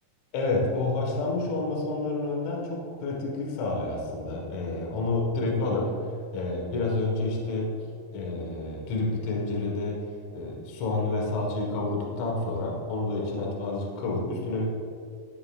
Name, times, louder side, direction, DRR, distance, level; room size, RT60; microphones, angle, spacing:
voice 1, 0.3-6.0 6.3-7.8 8.1-10.0 10.3-14.7, left 2 dB, 60° left, -2 dB, 2.2 m, -29 dB
19.5 x 6.8 x 2.4 m, 2.3 s
omnidirectional pair, 4.8 m